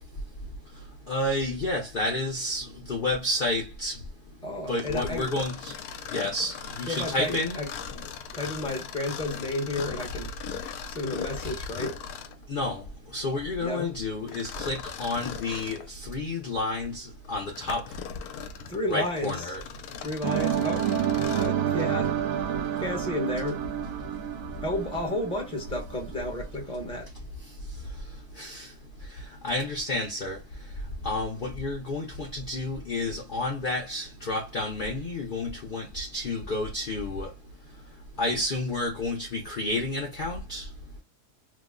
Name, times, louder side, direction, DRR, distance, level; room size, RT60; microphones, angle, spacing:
voice 1, 1.1-4.0 4.7-5.7 6.1-7.6 12.5-12.8 13.1-17.8 18.9-19.6 28.4-28.7 29.4-30.4 31.0-37.3 38.2-40.6, left 2 dB, 55° left, 0.5 m, -30 dB
voice 2, 4.4-5.3 6.9-7.7 8.3-10.3 10.9-12.0 13.6-13.9 18.7-19.5 20.0-20.9 21.3-22.1 22.8-23.6 24.6-27.1, left 1 dB, 5° left, 0.7 m, -32 dB
Mechanisms, 4.8-12.4 14.3-15.9 16.5-16.6 17.2-21.6, left 7 dB, 75° left, 1.0 m, -39 dB
sound 1, 20.2-26.2, right 9 dB, 70° right, 0.7 m, -29 dB
3.0 x 2.0 x 3.6 m
omnidirectional pair, 1.8 m